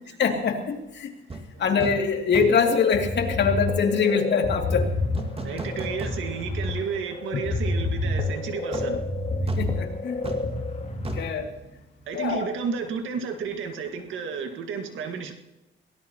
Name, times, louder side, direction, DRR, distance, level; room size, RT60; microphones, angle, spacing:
voice 1, 0.2-1.1 1.6-4.9 5.5-5.6 9.6-10.2 11.1-11.5 12.1-12.5, left 6 dB, 60° left, 3 dB, 2.6 m, -24 dB
sound 1, 1.3-1.5 1.8-2.1 2.3-2.7 5.1-6.6 7.0-7.1 8.7-12.4 12.6-12.8, right 1 dB, 30° right, 2.0 m, -36 dB
sound 2, 2.6-11.2, left 2 dB, 35° left, 2.6 m, -28 dB
voice 2, 5.4-9.1 12.1-15.3, right 6 dB, 80° right, 5 dB, 1.8 m, -32 dB
23.0 x 18.0 x 2.9 m, 0.96 s
cardioid pair, 90°, 20 cm